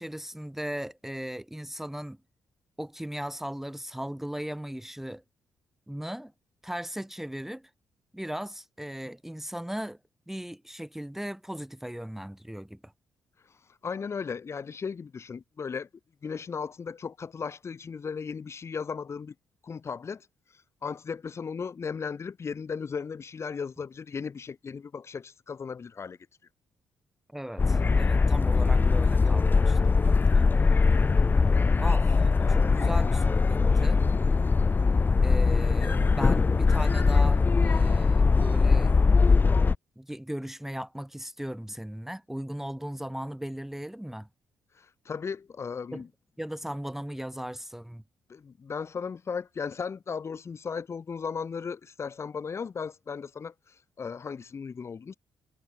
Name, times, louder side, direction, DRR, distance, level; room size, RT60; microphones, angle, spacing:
voice 1, 0.0-2.2 2.8-5.2 5.9-6.3 6.6-7.7 8.1-10.0 10.3-12.9 27.3-30.4 31.8-34.0 35.2-38.9 40.0-44.3 45.9-46.0 46.4-48.0, equal, 5° right, 1.3 m, -37 dB
voice 2, 13.8-15.9 16.2-19.3 19.6-20.3 20.8-26.2 44.8-46.1 48.3-55.2, left 6 dB, 50° left, 3.1 m, -36 dB
sound 1, 27.6-39.8, left 4 dB, 30° left, 0.6 m, -21 dB
supercardioid pair, 50°, 6 cm